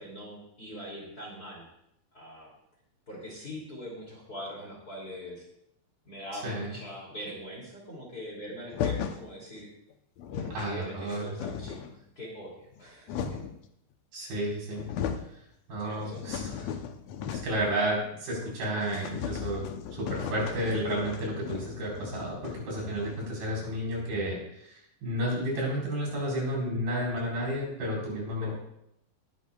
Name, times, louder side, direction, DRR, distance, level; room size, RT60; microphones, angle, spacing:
voice 1, 0.0-1.6 2.1-2.5 3.1-5.4 6.0-9.7 10.3-11.8 12.2-13.4 15.8-16.2 28.4-28.5, equal, 30° left, -2 dB, 2.8 m, -42 dB
sound 1, 8.7-9.3 9.9-10.0 10.2-10.7 11.1-12.0 12.6-13.6 14.4-14.5 14.7-15.3 15.7-17.7 18.0-18.1 18.4-18.5 18.8-23.4, left 8 dB, 90° left, 1.5 m, -36 dB
voice 2, 10.5-11.3 14.1-14.8 15.7-16.5 17.3-28.5, equal, 75° right, -3 dB, 6.1 m, -32 dB
19.0 x 11.5 x 2.3 m, 0.76 s
omnidirectional pair, 4.2 m